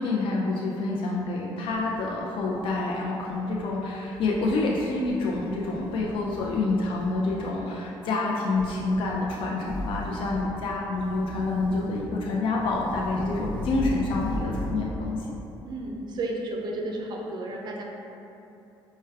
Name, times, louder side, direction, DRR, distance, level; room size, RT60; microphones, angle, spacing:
voice 1, 0.0-15.3, left 3 dB, 65° left, -3 dB, 0.4 m, -27 dB
sound 1, 1.6-2.8 3.2-3.6 4.1-4.6 5.0-6.6 6.9-7.4 8.5-9.3 9.6-10.5 10.9-12.1 12.5-14.8, left 1 dB, 10° left, 0.9 m, -38 dB
voice 2, 15.6-17.8, right 2 dB, 50° right, 0 dB, 0.5 m, -32 dB
4.6 x 2.2 x 3.3 m, 2.9 s
cardioid pair, 105°, 9 cm